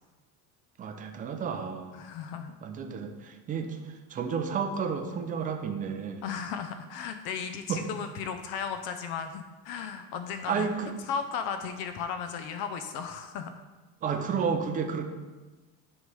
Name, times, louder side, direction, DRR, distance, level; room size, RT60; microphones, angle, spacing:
voice 1, 0.8-2.0 2.6-6.2 7.7-7.8 10.5-10.9 14.0-15.1, right 6 dB, 20° right, 5 dB, 0.4 m, -31 dB
voice 2, 2.0-2.5 6.2-10.7 11.1-13.5, left 6 dB, 65° left, 8 dB, 0.6 m, -35 dB
9.5 x 3.2 x 5.4 m, 1.2 s
cardioid pair, 170°, 41 cm